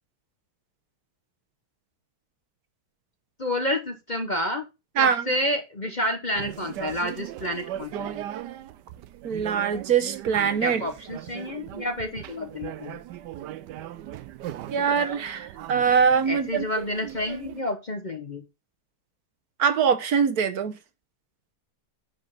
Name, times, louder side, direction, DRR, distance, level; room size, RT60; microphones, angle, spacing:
voice 1, 3.4-4.6 5.0-8.2 10.6-13.0 16.3-18.4, left 1 dB, 35° left, 0.9 m, -29 dB
voice 2, 5.0-5.3 9.2-10.8 14.7-16.7 19.6-20.7, right 6 dB, 65° right, 1.4 m, -23 dB
sound 1, 6.3-17.6, right 12 dB, 85° right, 1.2 m, -38 dB
10.5 x 5.3 x 4.1 m
omnidirectional pair, 1.8 m